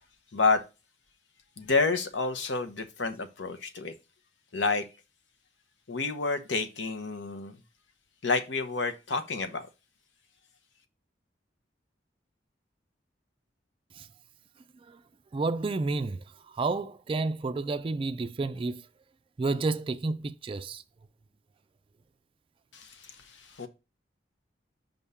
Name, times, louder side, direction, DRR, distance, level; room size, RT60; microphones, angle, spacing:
voice 1, 0.3-0.6 1.6-3.9 4.5-4.9 5.9-7.6 8.2-9.7 22.7-23.7, left 4 dB, 80° left, 0.9 m, -29 dB
voice 2, 15.3-18.8 19.4-20.8, right 3 dB, 30° right, 0.3 m, -31 dB
5.4 x 3.5 x 5.5 m
head